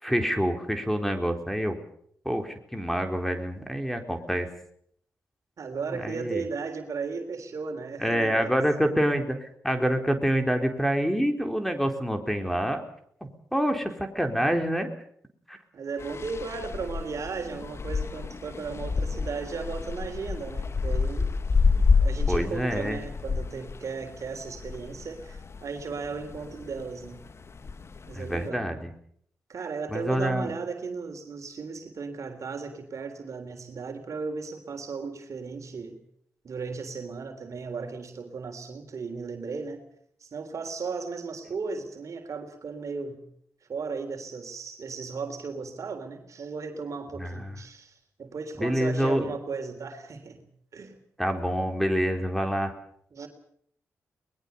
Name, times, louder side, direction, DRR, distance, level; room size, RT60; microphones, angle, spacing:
voice 1, 0.0-1.8 2.2-4.5 5.9-6.4 8.0-12.8 13.5-14.9 15.5-15.6 22.3-23.0 28.1-28.9 29.9-30.5 47.2-47.5 48.6-49.3 51.2-52.7, equal, 5° left, 5 dB, 4.1 m, -27 dB
voice 2, 5.6-8.5 15.7-21.3 22.0-27.2 28.1-28.7 29.5-36.0 36.4-39.8 40.2-43.2 43.7-50.4 50.7-51.0 53.1-53.3, right 4 dB, 65° right, 6 dB, 3.6 m, -36 dB
sound 1, 16.0-28.5, left 4 dB, 50° left, 1.4 m, -29 dB
22.5 x 21.0 x 7.0 m, 0.65 s
cardioid pair, 50°, 6 cm